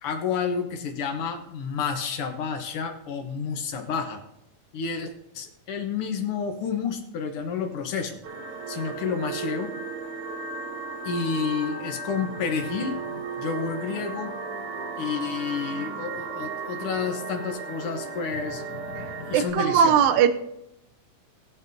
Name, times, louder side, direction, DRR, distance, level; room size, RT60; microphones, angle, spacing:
voice 1, 0.0-4.2 4.7-8.2 8.7-9.7 11.0-14.3 15.0-19.9, left 6 dB, 75° left, 4 dB, 1.2 m, -30 dB
sound 1, 8.2-19.5, right 4 dB, 65° right, 2.7 m, -35 dB
voice 2, 19.3-20.3, right 8 dB, 80° right, 10 dB, 2.4 m, -19 dB
20.0 x 7.9 x 2.7 m, 0.80 s
omnidirectional pair, 4.1 m